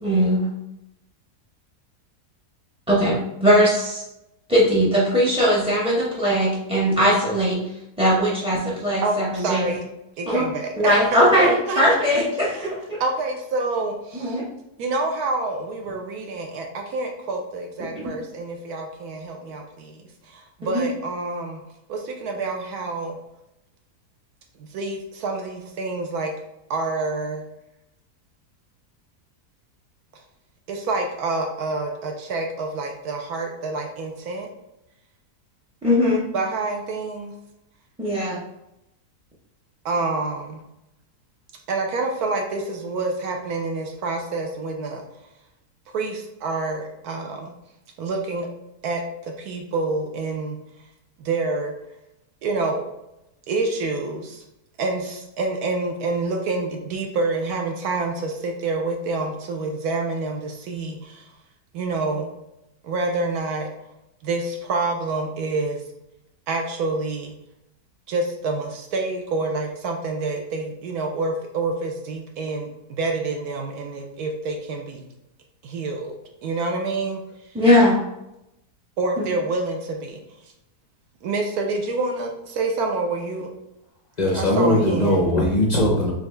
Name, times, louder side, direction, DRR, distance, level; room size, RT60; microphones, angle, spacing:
voice 1, 0.0-0.5 2.9-4.0 4.5-7.6 8.0-9.7 10.3-10.4 10.8-13.0 14.1-14.5 20.6-20.8 35.8-36.2 38.0-38.4 77.5-78.0, equal, 5° right, -6 dB, 0.4 m, -19 dB
voice 2, 9.0-9.9 10.2-12.0 12.4-12.7 13.0-14.4 14.8-21.6 21.9-23.2 24.6-26.3 26.7-27.4 30.7-34.5 36.3-37.3 39.8-40.6 41.7-45.0 45.9-47.5 48.0-48.5 48.8-50.6 51.2-51.7 52.4-52.8 53.5-54.4 54.8-61.3 61.7-62.3 62.8-63.7 64.2-65.8 66.5-67.3 68.1-75.0 75.6-76.1 76.4-77.2 79.0-80.2 81.2-83.5 84.3-85.2, right 3 dB, 75° right, 2 dB, 1.1 m, -27 dB
voice 3, 84.2-86.1, left 1 dB, 55° left, -2 dB, 0.4 m, -19 dB
4.0 x 3.5 x 3.2 m, 0.87 s
omnidirectional pair, 1.7 m